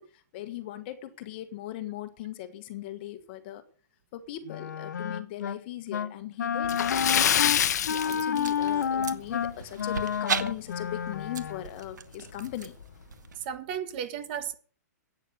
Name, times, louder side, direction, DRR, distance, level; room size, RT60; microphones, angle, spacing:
voice 1, 0.0-3.6 4.1-7.0 7.9-12.8, left 13 dB, 35° left, 1.5 m, -39 dB
Wind instrument woodwind instrument, 4.5-5.6 5.9-6.1 6.4-11.7, left 8 dB, 90° left, 1.0 m, -30 dB
Splash splatter, 6.6-9.0 9.3-9.5 9.9-10.0 11.5-11.6 11.9-12.0 12.6-12.9, left 9 dB, 70° left, 0.8 m, -26 dB
sound 1, 7.7-13.5, right 7 dB, 90° right, 1.4 m, -38 dB
voice 2, 13.4-14.5, right 9 dB, 35° right, 1.5 m, -34 dB
11.5 x 9.2 x 6.6 m
hypercardioid pair, 165°, 9 cm